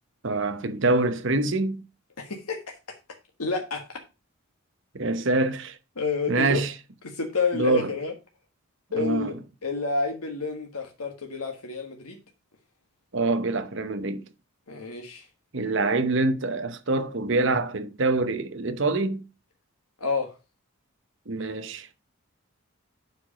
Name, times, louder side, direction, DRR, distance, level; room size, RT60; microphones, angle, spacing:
voice 1, 0.2-1.8 4.9-5.8 6.3-6.7 7.5-7.9 9.0-9.3 13.1-14.2 15.5-19.2 21.3-21.9, right 2 dB, 55° right, 0.9 m, -25 dB
voice 2, 2.2-2.8 3.4-3.9 6.0-6.6 7.0-8.1 8.9-9.3 9.6-12.2 14.7-15.2 20.0-20.3, left 4 dB, 90° left, 1.5 m, -29 dB
8.0 x 4.8 x 5.1 m
head